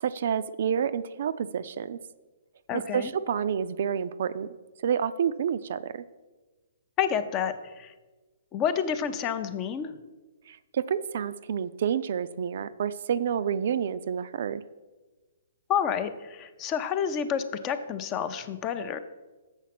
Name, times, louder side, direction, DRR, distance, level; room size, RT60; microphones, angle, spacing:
voice 1, 0.0-2.0 2.7-4.5 4.8-6.0 10.5-14.6, right 8 dB, 55° right, 14 dB, 0.4 m, -29 dB
voice 2, 2.7-3.1 7.0-7.9 8.5-9.9 15.7-19.0, left 8 dB, 25° left, 10 dB, 0.5 m, -29 dB
7.2 x 6.4 x 5.9 m, 1.2 s
hypercardioid pair, 155°, 0 cm